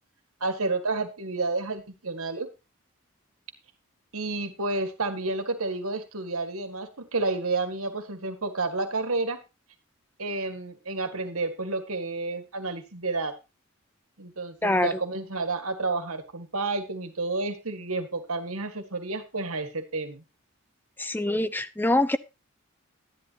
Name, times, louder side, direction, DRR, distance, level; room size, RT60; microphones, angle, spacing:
voice 1, 0.4-2.5 4.1-9.4 10.2-13.4 14.2-20.2, right 3 dB, 80° right, 8 dB, 1.9 m, -30 dB
voice 2, 21.0-22.2, left 1 dB, 10° left, 13 dB, 0.6 m, -24 dB
12.5 x 11.0 x 2.9 m, 0.28 s
head